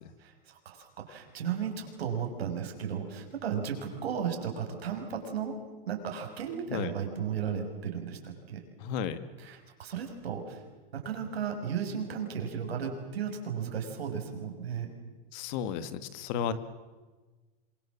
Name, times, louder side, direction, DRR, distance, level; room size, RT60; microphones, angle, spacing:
voice 1, 0.2-5.6 5.9-8.6 9.4-10.6 10.9-14.9, right 7 dB, 90° right, 4 dB, 6.4 m, -35 dB
voice 2, 8.8-9.2 15.3-16.5, left 8 dB, 45° left, 13 dB, 2.0 m, -33 dB
27.0 x 24.0 x 7.5 m, 1.3 s
supercardioid pair, 145°, 30 cm